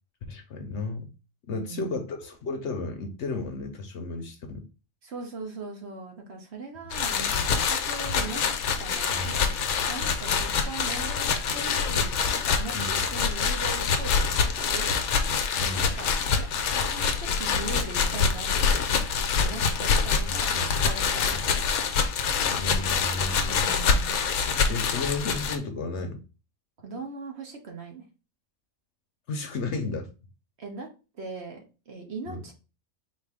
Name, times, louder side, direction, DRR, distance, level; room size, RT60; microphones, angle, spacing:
voice 1, 0.3-1.1 1.5-4.7 9.1-9.4 12.7-13.1 15.6-16.0 20.3-20.7 21.3-21.4 22.5-23.7 24.7-26.2 29.3-30.1 32.3-32.4, left 3 dB, 60° left, 5 dB, 0.9 m, -33 dB
voice 2, 1.6-2.0 5.0-9.4 9.9-15.5 15.8-16.1 16.3-16.5 16.7-18.8 19.4-20.6 20.8-21.7 23.6-24.2 26.8-28.0 30.6-30.9 31.1-32.5, right 3 dB, 55° right, 2 dB, 1.0 m, -40 dB
sound 1, 6.9-25.6, left 5 dB, 85° left, 1.1 m, -26 dB
4.3 x 2.6 x 3.6 m, 0.32 s
omnidirectional pair, 1.4 m